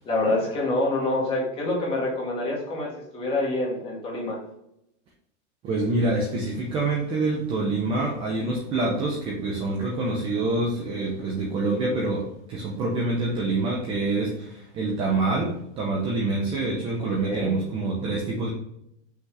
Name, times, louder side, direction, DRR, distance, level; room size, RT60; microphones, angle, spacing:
voice 1, 0.0-4.4 17.2-17.5, left 2 dB, 15° left, -4 dB, 1.8 m, -26 dB
voice 2, 5.6-18.5, right 2 dB, 15° right, -2 dB, 0.6 m, -26 dB
5.8 x 5.5 x 3.3 m, 0.77 s
supercardioid pair, 180°, 36 cm